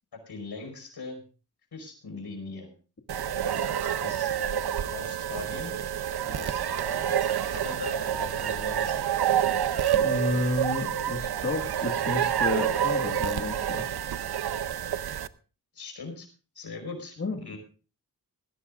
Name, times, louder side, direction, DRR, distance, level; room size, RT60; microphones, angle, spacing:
voice 1, 0.3-1.2 1.7-2.7 3.8-4.3 4.9-5.8 6.3-7.1 7.4-9.2 15.7-16.3 16.6-17.6, left 3 dB, 85° left, 4 dB, 5.3 m, -40 dB
sound 1, 3.1-15.3, right 10 dB, 75° right, 0.7 m, -28 dB
voice 2, 9.9-13.8 17.2-17.4, left 2 dB, 40° left, 2 dB, 1.8 m, -31 dB
20.0 x 16.0 x 2.5 m, 0.36 s
wide cardioid pair, 105°, 39 cm